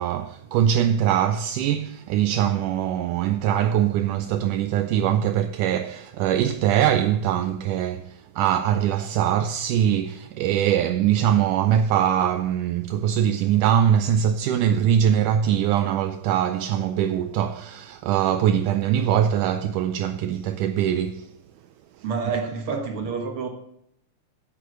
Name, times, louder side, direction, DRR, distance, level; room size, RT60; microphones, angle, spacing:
voice 1, 0.0-21.3, right 10 dB, 80° right, 2.0 m, -22 dB
voice 2, 22.0-23.5, right 5 dB, 50° right, 1.9 m, -28 dB
8.6 x 8.5 x 6.4 m
omnidirectional pair, 3.8 m